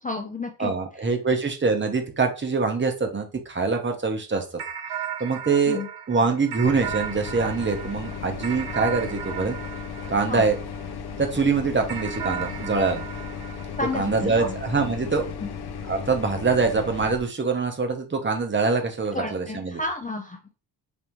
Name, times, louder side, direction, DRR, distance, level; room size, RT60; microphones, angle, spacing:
voice 1, 0.0-0.7 1.0-1.1 5.7-5.9 10.3-10.4 13.8-14.6 15.4-15.5 19.1-20.5, left 3 dB, 20° left, 4 dB, 0.4 m, -31 dB
voice 2, 0.6-4.4 5.2-9.6 10.1-10.6 11.2-13.0 13.9-15.3 15.9-19.8, right 4 dB, 30° right, 5 dB, 0.8 m, -24 dB
sound 1, 4.6-11.2 11.9-14.6, right 9 dB, 65° right, 0.7 m, -36 dB
sound 2, 6.6-17.2, left 6 dB, 70° left, 0.7 m, -35 dB
5.2 x 3.3 x 3.0 m, 0.32 s
wide cardioid pair, 170°, 40 cm